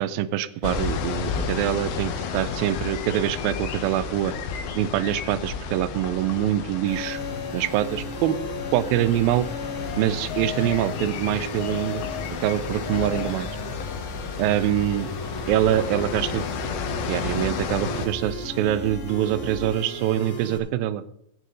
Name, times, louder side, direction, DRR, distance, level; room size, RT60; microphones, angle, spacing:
voice 1, 0.0-4.3 4.8-7.2 7.5-8.4 8.7-9.5 10.0-12.1 12.4-13.5 14.4-15.1 15.5-16.4 17.1-21.0, right 12 dB, 80° right, 16 dB, 2.3 m, -24 dB
sound 1, 0.6-18.1, left 6 dB, 75° left, 2.9 m, -32 dB
sound 2, 6.9-20.6, left 2 dB, 55° left, 4.2 m, -35 dB
17.0 x 9.6 x 3.9 m, 0.75 s
omnidirectional pair, 4.3 m